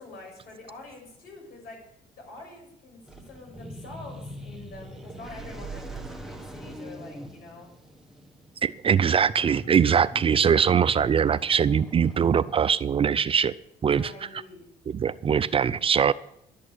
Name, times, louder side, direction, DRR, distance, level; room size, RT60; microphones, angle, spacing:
voice 1, 0.0-1.8 2.2-7.7 13.8-14.6, left 2 dB, 65° left, 1 dB, 7.0 m, -45 dB
sound 1, 3.1-12.6, right 1 dB, ahead, 1.4 m, -43 dB
voice 2, 8.6-13.5 13.8-14.1 14.9-16.1, right 7 dB, 35° right, 16 dB, 0.5 m, -22 dB
12.0 x 8.4 x 9.0 m, 0.79 s
cardioid pair, 110°, 17 cm